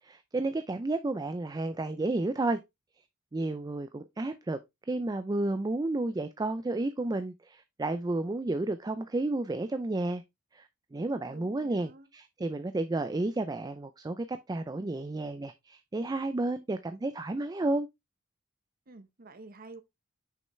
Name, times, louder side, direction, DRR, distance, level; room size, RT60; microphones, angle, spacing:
voice 1, 0.0-2.6 3.3-10.2 10.5-17.9, right 2 dB, 20° right, 0.4 m, -32 dB
voice 2, 11.3-12.1 18.9-19.8, right 2 dB, 45° right, 0.9 m, -49 dB
6.4 x 5.4 x 3.1 m
head